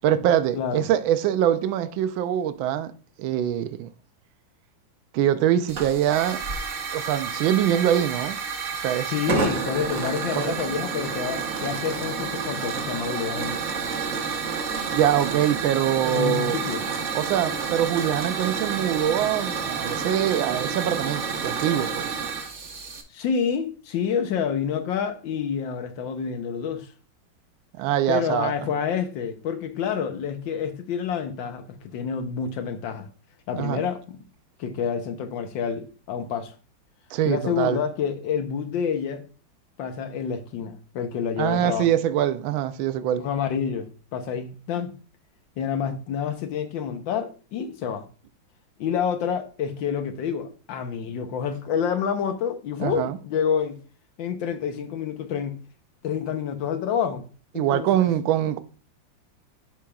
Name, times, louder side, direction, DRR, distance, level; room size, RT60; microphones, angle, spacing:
voice 1, 0.0-2.9 3.2-3.9 5.1-6.4 6.9-8.4 8.8-9.1 10.3-10.6 14.9-16.6 17.1-22.2 27.8-28.5 33.6-33.8 37.1-37.8 41.4-43.2 52.8-53.2 57.6-58.6, right 11 dB, 80° right, 1.4 m, -24 dB
Hiss / Fire, 5.7-23.0, right 5 dB, 45° right, 1.1 m, -29 dB
voice 2, 9.0-13.7 16.1-16.9 23.1-26.9 28.1-33.1 33.5-34.2 34.6-36.5 37.3-39.2 39.8-41.9 43.2-44.9 45.6-48.0 48.8-53.8 54.2-55.6 56.0-57.2 57.5-58.1, left 7 dB, 70° left, 1.5 m, -28 dB
11.0 x 5.0 x 2.3 m
omnidirectional pair, 2.2 m